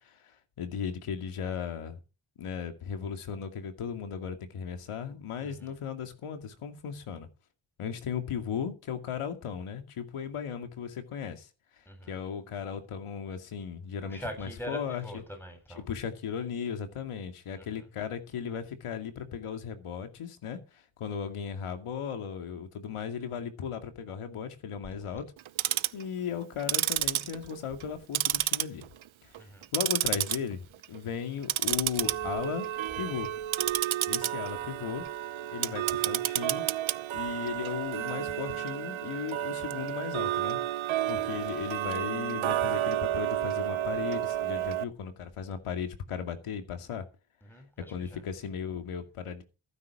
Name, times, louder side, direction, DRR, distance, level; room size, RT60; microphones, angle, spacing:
voice 1, 0.0-2.0 2.4-7.3 7.8-11.5 12.1-15.2 15.8-25.2 25.9-28.9 29.2-29.3 29.7-32.7 33.0-33.3 34.1-35.1 35.5-36.6 37.1-40.6 41.1-47.0 47.9-49.4, left 7 dB, 85° left, 2.4 m, -36 dB
voice 2, 5.4-5.7 11.9-12.2 14.0-15.8 17.6-17.9 29.4-29.6 41.1-41.4 47.4-48.2, equal, 5° left, 8.0 m, -43 dB
Tick-tock, 25.4-26.0 26.6-27.9 28.1-29.0 29.3-30.4 30.7-31.0 31.4-44.8, right 12 dB, 70° right, 0.8 m, -30 dB
15.0 x 9.6 x 4.9 m
cardioid pair, 55°, 50 cm